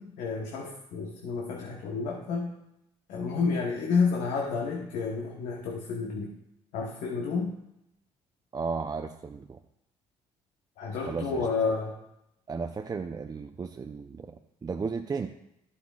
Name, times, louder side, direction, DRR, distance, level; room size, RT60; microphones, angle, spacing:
voice 1, 0.0-2.5 3.1-6.3 6.7-7.5 10.8-11.9, left 4 dB, 80° left, 0 dB, 1.1 m, -30 dB
voice 2, 8.5-9.6 11.0-11.5 12.5-14.4 14.6-15.3, right 5 dB, 30° right, 4 dB, 0.6 m, -34 dB
11.5 x 8.4 x 2.4 m, 0.84 s
supercardioid pair, 70°, 12 cm